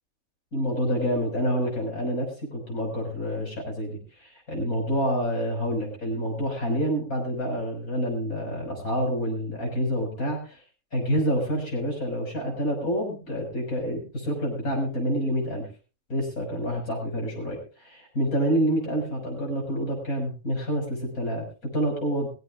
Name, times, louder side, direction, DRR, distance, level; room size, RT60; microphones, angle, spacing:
voice 1, 0.5-10.6 10.9-15.7 16.1-22.3, equal, 85° left, -1 dB, 6.5 m, -28 dB
20.0 x 16.0 x 2.5 m, 0.34 s
omnidirectional pair, 1.5 m